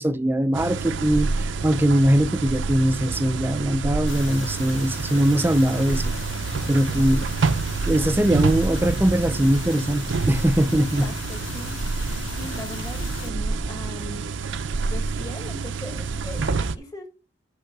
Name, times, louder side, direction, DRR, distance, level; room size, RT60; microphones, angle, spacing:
voice 1, 0.0-6.1 6.7-7.3 7.9-11.1, right 1 dB, 10° right, 0.4 m, -21 dB
sound 1, 0.5-16.8, right 4 dB, 75° right, 0.6 m, -28 dB
sound 2, 4.1-13.3, left 9 dB, 70° left, 0.3 m, -38 dB
voice 2, 6.9-7.2 11.0-14.5 14.8-17.1, left 1 dB, 20° left, 1.4 m, -40 dB
6.6 x 5.5 x 5.9 m
head